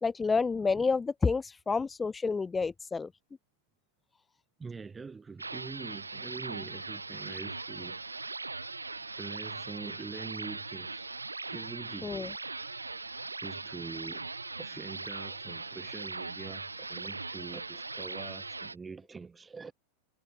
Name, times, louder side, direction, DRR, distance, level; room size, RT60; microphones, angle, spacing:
voice 1, 0.0-3.1 12.0-12.3, left 4 dB, 15° left, 0.3 m, -29 dB
voice 2, 4.6-8.0 9.0-11.1 11.5-13.1 13.4-19.7, right 4 dB, 15° right, 2.2 m, -45 dB
sound 1, 5.4-18.8, right 3 dB, 80° right, 3.6 m, -40 dB
figure-of-eight pair, 90°, 0 cm